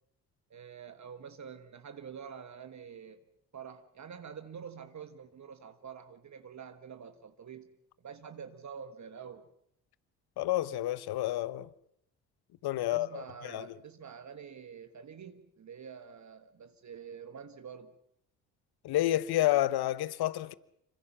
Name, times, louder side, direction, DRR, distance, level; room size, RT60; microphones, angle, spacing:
voice 1, 0.5-3.2 3.5-7.7 8.0-9.5 12.8-17.9, right 7 dB, 40° right, 1.6 m, -47 dB
voice 2, 10.4-11.7 12.6-13.7 18.8-20.5, left 14 dB, 60° left, 1.1 m, -30 dB
26.5 x 24.5 x 5.9 m
hypercardioid pair, 50°, 43 cm